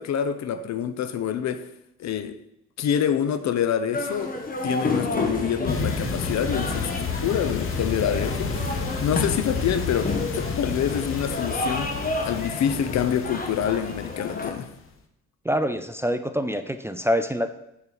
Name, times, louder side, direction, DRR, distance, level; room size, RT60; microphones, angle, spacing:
voice 1, 0.0-1.7 2.0-2.4 2.8-4.4 4.6-8.6 9.0-11.9 12.2-14.7, left 8 dB, 65° left, 0.8 m, -26 dB
sound 1, 3.9-14.5, left 2 dB, 30° left, 1.6 m, -31 dB
sound 2, 4.9-10.2, right 4 dB, 35° right, 0.8 m, -41 dB
sound 3, 5.7-14.7, left 5 dB, 45° left, 1.2 m, -31 dB
voice 2, 15.4-17.5, equal, 10° right, 0.5 m, -25 dB
7.0 x 4.5 x 6.8 m
cardioid pair, 90°, 30 cm